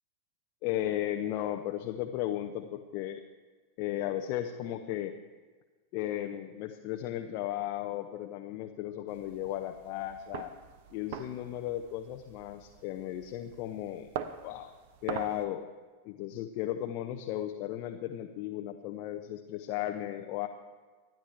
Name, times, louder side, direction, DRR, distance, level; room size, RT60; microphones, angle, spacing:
voice 1, 0.6-3.2 3.8-5.2 5.9-10.5 10.9-14.1 14.4-14.7 15.0-15.7 16.0-20.5, left 12 dB, 45° left, 5 dB, 0.7 m, -35 dB
sound 1, 9.1-15.4, right 9 dB, 50° right, 0.8 m, -43 dB
25.5 x 10.5 x 3.4 m, 1.4 s
figure-of-eight pair, 90°, 0 cm